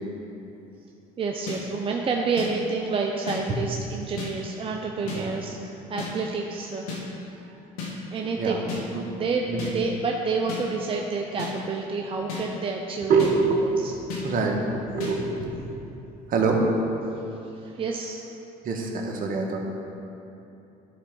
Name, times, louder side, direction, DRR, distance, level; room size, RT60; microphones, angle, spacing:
voice 1, 1.2-6.9 7.3-7.4 8.1-8.7 9.2-13.3 13.8-13.9 14.2-14.3 17.6-18.2, right 4 dB, 30° right, 1 dB, 0.7 m, -29 dB
sound 1, 1.5-1.6 2.4-2.5 3.3-3.4 4.2-4.3 5.1-5.2 6.0-6.1 6.9-7.0 7.8-7.9 8.7-8.8 9.6-9.7 10.5-10.6 11.4-11.5 12.3-12.4 13.2-13.3 14.1-14.2 15.0-15.1, left 5 dB, 90° left, 1.8 m, -32 dB
voice 2, 13.1-15.6 16.3-16.6 18.6-19.6, right 4 dB, 50° right, 1 dB, 1.4 m, -25 dB
12.0 x 4.4 x 5.4 m, 3.0 s
supercardioid pair, 80°, 18 cm